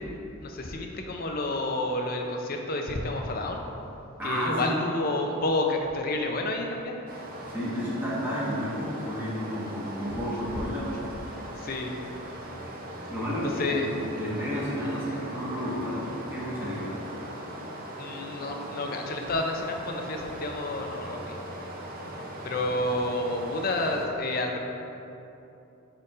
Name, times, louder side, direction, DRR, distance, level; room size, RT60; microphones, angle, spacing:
voice 1, 0.4-3.6 4.2-7.0 11.6-11.9 13.0-13.1 13.6-13.9 18.0-21.3 22.4-24.6, left 2 dB, 40° left, 2 dB, 0.5 m, -30 dB
voice 2, 4.2-4.7 7.5-10.9 13.1-13.8 14.1-17.0 22.6-22.7, equal, 10° right, -8 dB, 1.0 m, -31 dB
Stream, 7.1-24.1, right 1 dB, 40° right, 0.7 m, -40 dB
5.3 x 4.4 x 4.9 m, 2.9 s
head